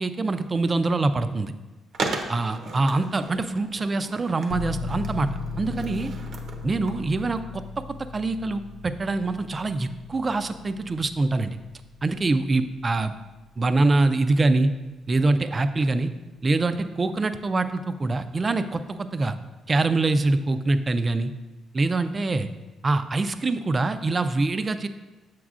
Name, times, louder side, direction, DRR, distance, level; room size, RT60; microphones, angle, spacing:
voice 1, 0.0-1.5 2.3-5.3 5.6-6.1 6.6-7.6 8.1-11.6 12.0-13.1 13.6-14.7 15.1-16.1 16.4-19.4 19.7-21.3 21.7-22.5 22.8-24.9, right 2 dB, 30° right, 10 dB, 0.3 m, -24 dB
Skateboard, 1.9-7.4, right 3 dB, 60° right, 0.7 m, -36 dB
sound 1, 4.5-15.0, left 4 dB, 75° left, 0.3 m, -38 dB
7.1 x 6.0 x 2.4 m, 1.2 s
cardioid pair, 90°, 0 cm